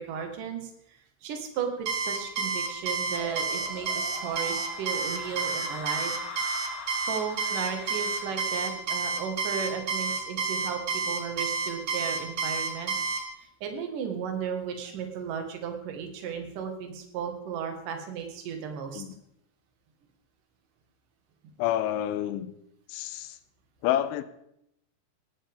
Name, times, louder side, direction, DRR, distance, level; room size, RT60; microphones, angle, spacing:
voice 1, 0.0-6.2 7.1-12.9 13.4-19.0, right 7 dB, 55° right, 2.6 m, -35 dB
Alarm, 1.9-13.2, right 4 dB, 75° right, 1.5 m, -29 dB
sound 1, 3.2-8.8, left 5 dB, 60° left, 4.4 m, -43 dB
voice 2, 21.6-22.5 22.9-23.4 23.8-24.2, left 12 dB, 80° left, 3.0 m, -28 dB
18.5 x 13.0 x 3.6 m
omnidirectional pair, 5.7 m